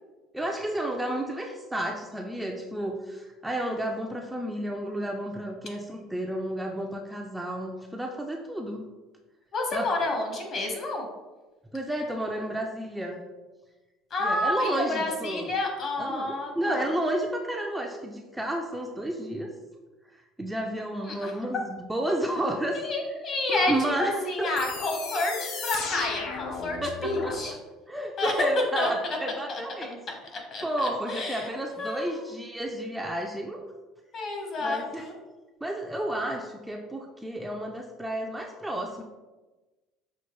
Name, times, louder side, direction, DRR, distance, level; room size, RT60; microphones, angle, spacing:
voice 1, 0.3-8.8 9.7-9.9 11.7-13.2 14.2-15.5 16.0-19.5 20.4-22.8 23.5-24.5 26.8-27.5 27.9-30.0 30.6-33.6 34.6-35.1 35.6-39.0, right 1 dB, 5° right, 1 dB, 0.4 m, -31 dB
voice 2, 9.5-11.1 14.1-16.9 21.0-21.3 22.7-27.5 28.2-28.3 28.8-29.2 29.5-29.6 30.3-31.5 31.8-32.4 34.1-35.1, left 2 dB, 40° left, 2 dB, 1.0 m, -30 dB
sound 1, 24.6-27.4, left 4 dB, 60° left, 0.6 m, -35 dB
5.7 x 2.4 x 3.0 m, 1.2 s
cardioid pair, 120°, 0 cm